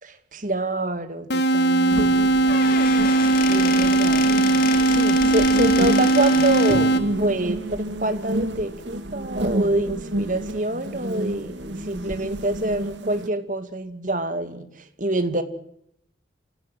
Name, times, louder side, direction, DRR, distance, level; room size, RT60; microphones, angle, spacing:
voice 1, 0.0-2.7 3.5-4.3 4.9-6.9 7.2-14.7 15.0-15.4, right 1 dB, 45° right, 9 dB, 2.4 m, -26 dB
sound 1, 1.3-7.3, right 3 dB, 65° left, 1.7 m, -19 dB
sound 2, 1.9-13.3, right 1 dB, 80° right, 2.2 m, -30 dB
Squeak / Wood, 2.3-6.9, left 4 dB, 50° left, 3.5 m, -30 dB
27.5 x 17.0 x 9.2 m, 0.73 s
head